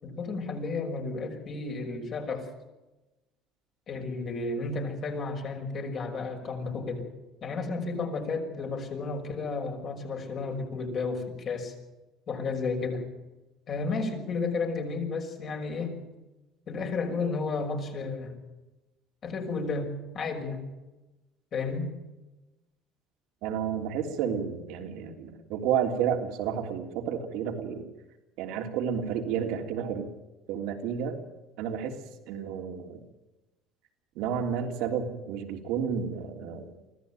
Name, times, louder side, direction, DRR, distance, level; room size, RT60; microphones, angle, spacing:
voice 1, 0.0-2.5 3.9-7.1 7.4-11.7 12.3-13.1 13.7-16.0 16.7-18.4 19.2-20.6 21.5-21.9, left 4 dB, 45° left, 3 dB, 6.0 m, -32 dB
voice 2, 23.4-27.8 28.4-30.1 30.5-31.2 31.6-31.9 32.3-33.0 34.1-36.7, right 8 dB, 75° right, 4 dB, 3.3 m, -31 dB
24.5 x 15.0 x 9.1 m, 1.1 s
supercardioid pair, 100°, 0 cm